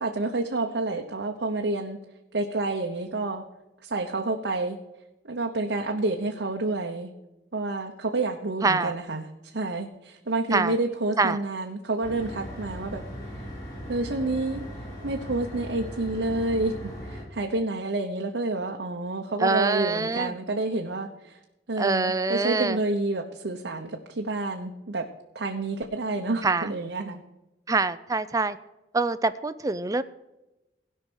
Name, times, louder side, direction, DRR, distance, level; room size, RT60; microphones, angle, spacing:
voice 1, 0.0-2.0 2.3-3.4 3.8-4.8 5.3-7.1 7.5-9.3 9.5-13.0 13.9-14.6 15.0-21.4 21.7-25.1 25.3-27.2, right 2 dB, 85° right, 2 dB, 1.0 m, -29 dB
voice 2, 8.6-8.9 10.5-10.7 11.2-11.4 19.4-20.3 21.8-22.8 26.4-26.7 27.7-28.6 28.9-30.0, right 3 dB, 20° right, 13 dB, 0.5 m, -25 dB
sound 1, 12.0-17.2, equal, 20° left, 4.3 m, -38 dB
17.0 x 5.6 x 6.3 m, 0.97 s
head